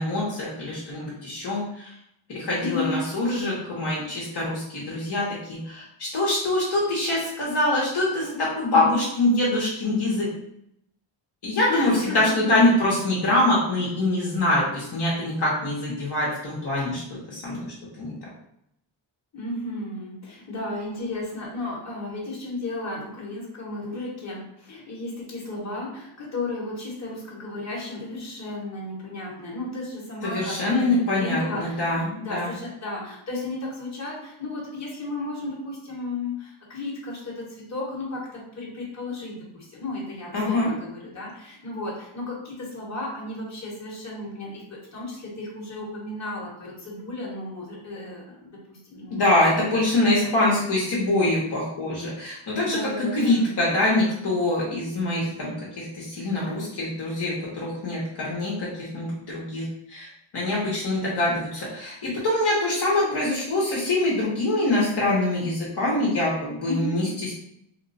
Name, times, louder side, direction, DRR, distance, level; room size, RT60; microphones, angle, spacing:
voice 1, 0.0-2.0 2.3-10.3 11.4-17.0 17.3-18.1 30.2-32.5 40.3-40.7 49.1-67.4, left 1 dB, 50° left, -6 dB, 0.9 m, -24 dB
voice 2, 2.6-2.9 11.7-12.5 17.3-17.4 19.3-49.2 49.6-49.7 50.1-50.6 52.6-53.6 66.6-67.0, left 2 dB, 35° left, -4 dB, 1.1 m, -34 dB
3.0 x 2.2 x 4.0 m, 0.76 s
wide cardioid pair, 155°, 49 cm